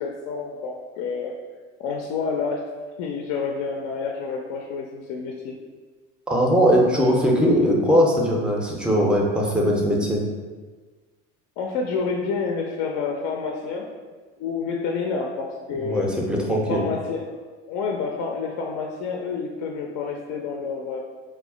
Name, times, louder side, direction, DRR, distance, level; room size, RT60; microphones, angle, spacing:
voice 1, 0.0-1.3 1.8-2.7 3.0-5.6 11.6-13.9 14.4-16.0 16.7-17.3 17.7-21.0, left 5 dB, 60° left, 1 dB, 0.4 m, -28 dB
voice 2, 6.3-10.2 15.8-16.8, equal, 5° right, -1 dB, 0.5 m, -20 dB
2.4 x 2.1 x 3.6 m, 1.4 s
hypercardioid pair, 75°, 36 cm